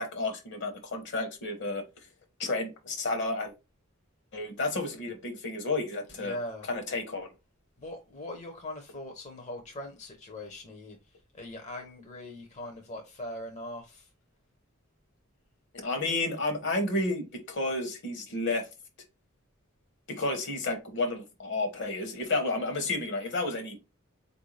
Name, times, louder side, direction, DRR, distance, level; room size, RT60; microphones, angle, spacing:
voice 1, 0.0-1.8 2.4-3.5 4.3-6.4 6.7-7.3 15.7-18.7 20.1-23.8, left 2 dB, 55° left, 1.0 m, -31 dB
voice 2, 6.0-6.7 7.8-11.0 11.3-14.1, left 1 dB, 35° left, 0.7 m, -41 dB
4.3 x 2.6 x 3.2 m
head